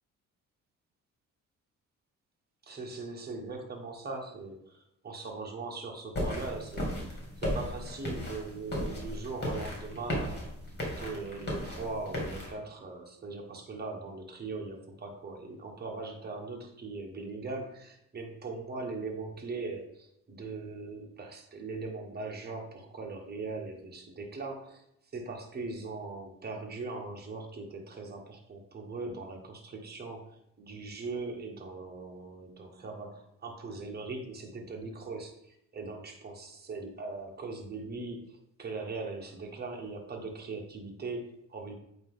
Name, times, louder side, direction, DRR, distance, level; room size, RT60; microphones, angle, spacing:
voice 1, 2.7-10.4 11.0-24.8 25.1-41.7, right 3 dB, 30° right, 1 dB, 1.4 m, -40 dB
sound 1, 6.1-12.5, equal, 35° left, 2.2 m, -35 dB
8.6 x 3.0 x 3.7 m, 0.76 s
cardioid pair, 90°, 30 cm